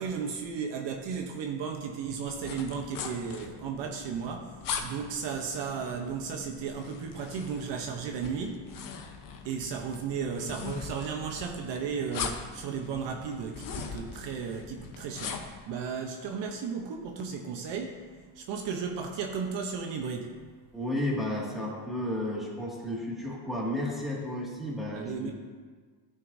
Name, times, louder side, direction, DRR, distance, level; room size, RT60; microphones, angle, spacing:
voice 1, 0.0-4.5 4.8-8.7 9.4-18.1 18.3-20.4 24.9-25.3, right 6 dB, 60° right, 3 dB, 1.0 m, -34 dB
sound 1, 2.3-15.6, left 6 dB, 40° left, 1.0 m, -41 dB
voice 2, 20.7-25.3, left 1 dB, ahead, -5 dB, 2.1 m, -32 dB
14.0 x 6.4 x 2.7 m, 1.6 s
cardioid pair, 120°, 49 cm